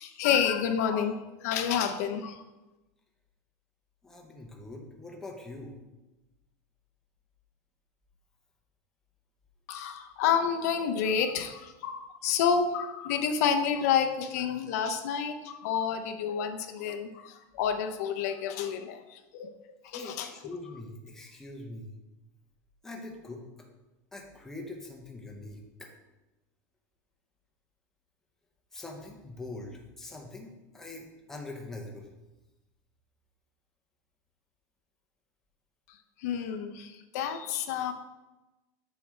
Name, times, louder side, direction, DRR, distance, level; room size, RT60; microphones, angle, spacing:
voice 1, 0.0-2.4 9.7-19.5 19.8-20.3 36.2-37.9, left 7 dB, 65° left, 7 dB, 0.5 m, -29 dB
voice 2, 4.0-5.7 19.9-21.9 22.8-23.6 24.1-25.9 28.7-32.1 36.5-36.6, left 2 dB, 5° left, 0 dB, 0.7 m, -43 dB
7.1 x 4.8 x 3.1 m, 1.0 s
supercardioid pair, 170°, 9 cm